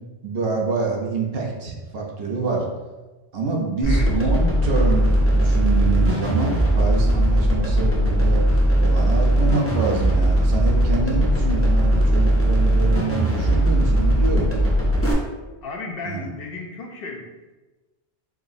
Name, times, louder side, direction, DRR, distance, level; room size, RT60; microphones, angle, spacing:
voice 1, 0.2-2.7 3.3-8.4 8.8-14.5 16.1-16.3, right 4 dB, 65° right, -1 dB, 0.9 m, -26 dB
voice 2, 3.8-4.2 15.6-17.3, left 3 dB, 65° left, 1 dB, 0.7 m, -34 dB
sound 1, 3.8-15.1, right 1 dB, 15° left, 0.5 m, -19 dB
4.7 x 2.9 x 2.6 m, 1.2 s
omnidirectional pair, 1.1 m